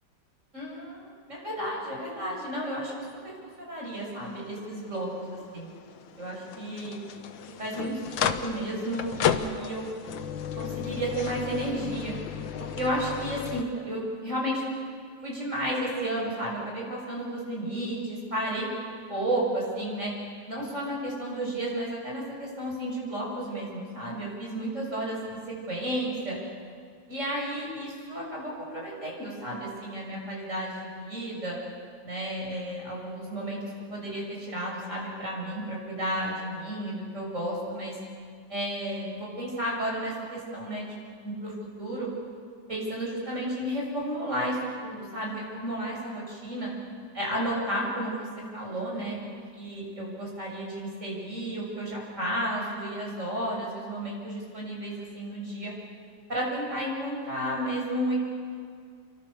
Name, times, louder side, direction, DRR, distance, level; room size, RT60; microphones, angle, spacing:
voice 1, 0.5-2.9 3.2-5.7 6.2-7.0 7.6-9.9 10.6-12.1 12.6-14.6 15.2-18.7 19.1-20.1 20.5-26.4 27.1-31.6 32.0-33.6 33.9-38.0 38.5-40.9 41.2-41.5 41.8-42.1 42.7-46.7 47.1-48.3 48.5-55.7 56.3-58.2, right 1 dB, 40° right, -3 dB, 7.5 m, -32 dB
sound 1, 3.9-13.6, left 8 dB, 90° left, 1.8 m, -34 dB
29.5 x 24.5 x 6.9 m, 2.1 s
omnidirectional pair, 2.0 m